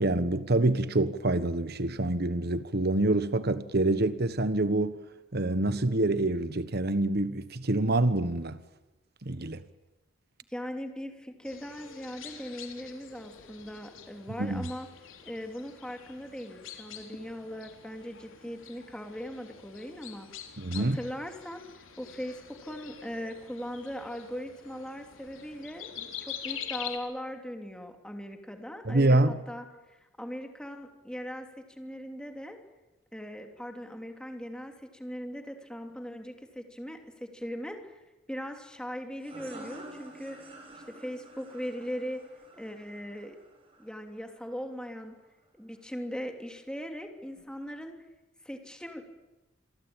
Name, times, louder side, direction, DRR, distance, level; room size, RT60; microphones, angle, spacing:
voice 1, 0.0-5.0 5.3-8.6 9.2-9.6 14.4-14.6 20.6-21.0 28.8-29.4, right 2 dB, 50° right, 1.3 m, -26 dB
voice 2, 10.5-14.9 15.2-20.3 20.7-21.6 22.0-32.6 33.1-38.0 38.3-40.4 40.9-42.2 42.5-43.4 43.8-45.2 45.6-47.9 48.4-49.0, equal, 5° left, 3.0 m, -39 dB
sound 1, 11.4-27.0, left 8 dB, 70° left, 3.6 m, -45 dB
sound 2, 39.2-44.6, right 1 dB, 25° right, 6.7 m, -49 dB
27.5 x 22.5 x 9.0 m
head